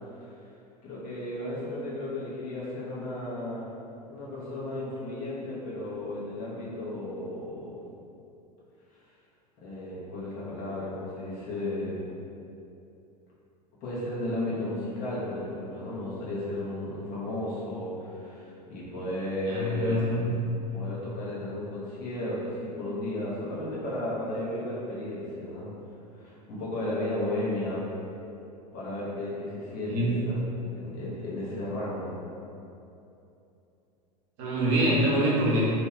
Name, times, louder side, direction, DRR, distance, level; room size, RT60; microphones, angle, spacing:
voice 1, 0.8-3.6 4.1-7.8 9.6-12.0 13.8-20.2 20.7-25.7 26.2-27.8 28.7-30.4 30.7-32.1, left 1 dB, 45° left, -7 dB, 0.9 m, -34 dB
voice 2, 19.5-20.3 29.9-30.2 34.4-35.7, equal, 55° right, -6 dB, 0.8 m, -25 dB
2.7 x 2.3 x 3.0 m, 2.8 s
figure-of-eight pair, 85°, 21 cm